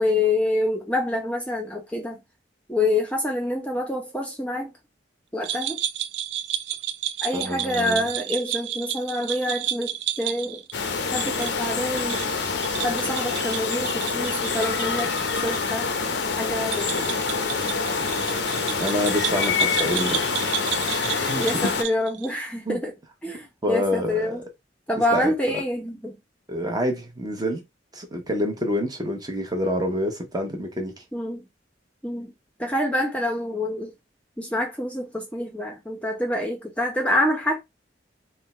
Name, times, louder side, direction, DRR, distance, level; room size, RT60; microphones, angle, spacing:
voice 1, 0.0-2.2 2.7-4.7 5.3-5.8 7.2-10.6 11.1-12.2 12.8-15.1 15.4-15.9 16.4-17.1 21.4-22.9 23.2-24.4 24.9-26.2 31.1-31.5 32.0-32.3 32.6-33.9 34.4-37.6, left 1 dB, 5° left, 0.8 m, -26 dB
sound 1, 5.4-15.6 15.9-16.0 16.6-22.4, right 11 dB, 70° right, 0.3 m, -32 dB
voice 2, 7.3-8.1 18.8-20.3 21.0-21.4 22.7-22.8 23.6-24.4 25.1-25.6 26.5-27.6 27.9-30.9, equal, 20° right, 1.0 m, -27 dB
sound 2, 10.7-21.8, left 5 dB, 70° left, 0.7 m, -26 dB
3.6 x 2.2 x 4.2 m
head